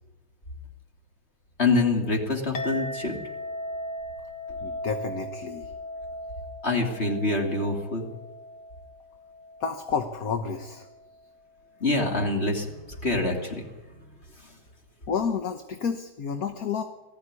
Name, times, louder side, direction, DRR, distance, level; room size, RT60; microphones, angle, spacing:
voice 1, 1.6-3.2 6.6-8.1 11.8-12.7 13.0-13.7, left 2 dB, 35° left, 1 dB, 3.3 m, -25 dB
Chink clink, 2.5-11.3, left 1 dB, 80° left, 2.2 m, -38 dB
voice 2, 4.6-5.7 9.6-10.9 15.1-16.8, left 6 dB, 60° left, 7 dB, 1.6 m, -30 dB
20.0 x 15.0 x 9.8 m, 1.1 s
omnidirectional pair, 1.8 m